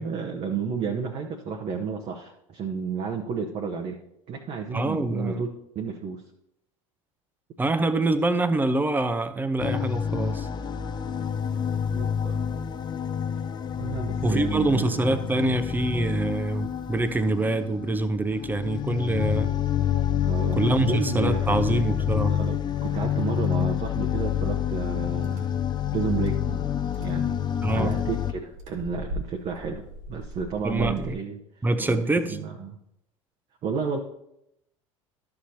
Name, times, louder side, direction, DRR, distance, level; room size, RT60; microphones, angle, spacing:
voice 1, 0.0-4.0 4.3-5.5 5.7-6.2 11.7-12.5 13.7-15.1 20.2-25.5 25.9-26.7 27.0-27.4 27.7-32.8 33.6-34.0, right 5 dB, 35° right, 3 dB, 0.9 m, -32 dB
voice 2, 4.7-5.4 7.6-10.5 14.2-19.5 20.5-22.4 27.6-27.9 30.6-31.1 31.6-32.4, right 2 dB, 10° right, 11 dB, 0.7 m, -25 dB
sound 1, 9.6-28.3, left 9 dB, 25° left, 0.5 m, -28 dB
sound 2, 24.8-31.1, right 1 dB, 65° right, 2.1 m, -41 dB
12.5 x 6.8 x 2.8 m, 0.79 s
figure-of-eight pair, 70°, 17 cm